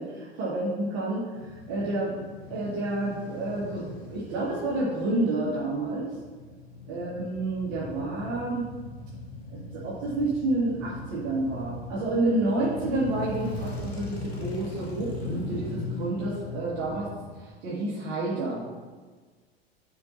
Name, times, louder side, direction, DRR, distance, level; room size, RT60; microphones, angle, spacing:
voice 1, 0.0-2.2 2.5-6.1 6.9-8.6 9.5-17.1 17.4-18.7, right 2 dB, 50° right, -8 dB, 2.0 m, -29 dB
Male speech man speaking / Motorcycle / Idling, 1.3-17.3, left 2 dB, 85° left, 1.4 m, -39 dB
10.0 x 5.5 x 2.8 m, 1.4 s
figure-of-eight pair, 80°, 31 cm